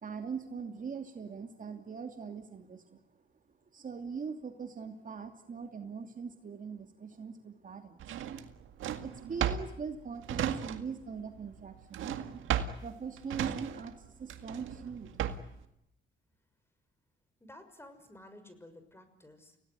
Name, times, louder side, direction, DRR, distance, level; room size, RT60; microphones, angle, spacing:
voice 1, 0.0-3.0 3.7-8.1 9.0-12.2 12.8-15.1, right 6 dB, 40° right, 5 dB, 2.8 m, -41 dB
Drawer open or close, 8.0-11.1 11.4-15.6, right 9 dB, 80° right, 1.9 m, -35 dB
voice 2, 17.4-19.6, left 1 dB, 10° left, 9 dB, 6.2 m, -53 dB
29.5 x 18.0 x 9.7 m, 0.78 s
cardioid pair, 90°, 20 cm